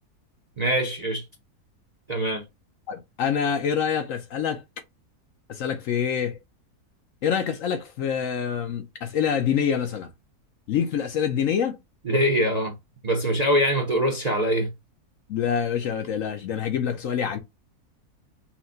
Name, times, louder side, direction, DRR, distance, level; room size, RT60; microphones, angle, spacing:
voice 1, 0.6-1.2 2.1-2.4 12.0-12.7 13.0-14.7, equal, 35° right, 0.6 m, -23 dB
voice 2, 2.9-4.6 5.5-6.4 7.2-10.1 10.7-11.8 15.3-17.4, left 8 dB, 65° left, 0.9 m, -26 dB
5.6 x 2.2 x 2.7 m
omnidirectional pair, 1.6 m